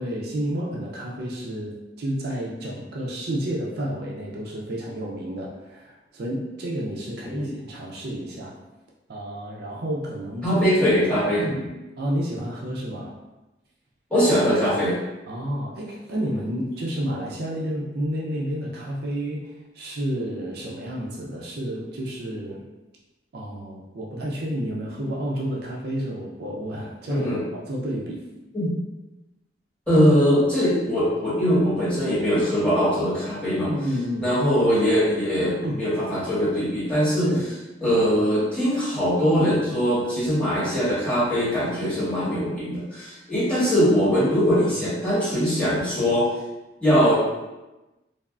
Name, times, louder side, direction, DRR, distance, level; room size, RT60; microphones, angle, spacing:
voice 1, 0.0-8.6 9.1-10.6 11.4-11.7 12.0-13.1 15.3-22.6 23.3-28.2 33.7-34.3 35.6-35.8 37.3-37.5, equal, 60° right, -3 dB, 0.4 m, -30 dB
voice 2, 10.4-11.4 14.1-15.0 27.1-27.4 28.5-28.7 29.9-33.7 34.2-37.3 37.8-46.3 46.8-47.1, equal, 5° left, -12 dB, 1.5 m, -21 dB
3.3 x 2.3 x 2.4 m, 1.0 s
head